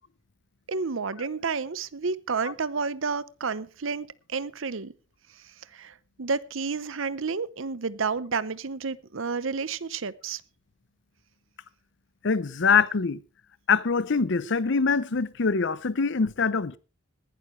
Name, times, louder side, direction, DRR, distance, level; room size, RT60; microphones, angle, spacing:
voice 1, 0.7-4.9 5.4-10.4, right 4 dB, 65° right, 0.8 m, -31 dB
voice 2, 12.2-13.2 13.7-16.8, left 5 dB, 60° left, 0.7 m, -24 dB
19.5 x 11.5 x 3.2 m
head